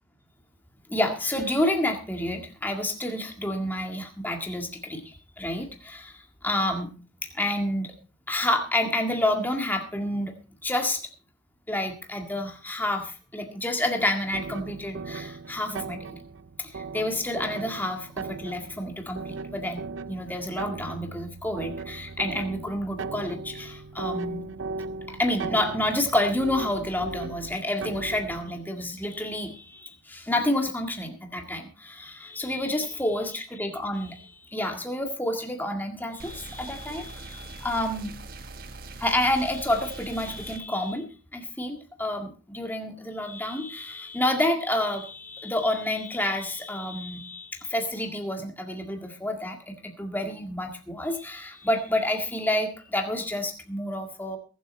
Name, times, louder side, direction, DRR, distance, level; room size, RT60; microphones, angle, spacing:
voice 1, 0.9-6.9 7.3-7.9 8.3-10.3 10.6-11.0 11.7-16.2 16.6-19.8 20.1-24.4 25.1-38.1 39.0-41.1 41.3-54.4, left 1 dB, 10° left, 3 dB, 1.9 m, -29 dB
sound 1, 14.3-28.5, right 4 dB, 70° right, 0.6 m, -38 dB
sound 2, 36.2-40.6, right 3 dB, 45° right, 1.4 m, -42 dB
21.5 x 7.7 x 4.3 m, 0.36 s
head